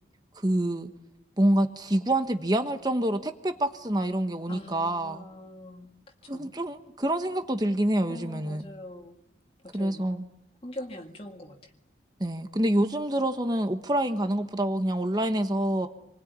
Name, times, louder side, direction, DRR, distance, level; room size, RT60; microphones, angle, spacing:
voice 1, 0.4-0.9 1.4-5.3 6.3-8.7 9.7-10.3 12.2-15.9, right 1 dB, 20° right, 7 dB, 1.3 m, -27 dB
voice 2, 4.5-5.9 6.3-6.6 8.1-9.1 9.6-10.0 10.6-11.6, left 1 dB, 30° left, 1 dB, 2.1 m, -42 dB
27.5 x 21.5 x 9.6 m, 0.83 s
head